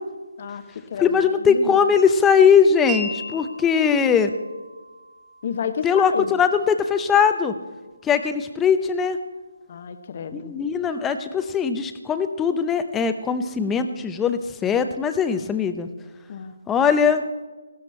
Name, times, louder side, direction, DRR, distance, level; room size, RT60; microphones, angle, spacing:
voice 1, 0.4-1.2 1.5-1.8 5.4-6.3 9.7-10.5 16.3-16.5, left 7 dB, 40° left, 9 dB, 1.0 m, -31 dB
voice 2, 1.0-4.3 5.8-7.5 8.0-9.2 10.3-15.9 16.7-17.2, left 6 dB, 10° left, 9 dB, 0.6 m, -20 dB
Wind chime, 2.9-9.0, right 1 dB, 15° right, 1.7 m, -39 dB
15.5 x 13.0 x 4.4 m, 1.3 s
hypercardioid pair, 165°, 0 cm